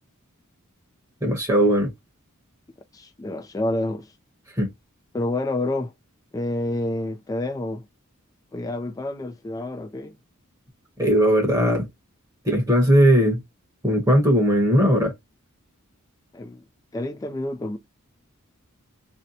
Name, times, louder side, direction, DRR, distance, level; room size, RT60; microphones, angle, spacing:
voice 1, 1.2-1.9 4.6-4.7 11.0-11.9 12.4-13.4 13.8-15.1, equal, 15° right, 1.0 m, -18 dB
voice 2, 2.9-4.1 5.1-5.9 6.3-7.9 8.5-10.2 16.3-16.6 16.9-17.8, left 1 dB, 15° left, 0.3 m, -28 dB
2.7 x 2.1 x 3.9 m
head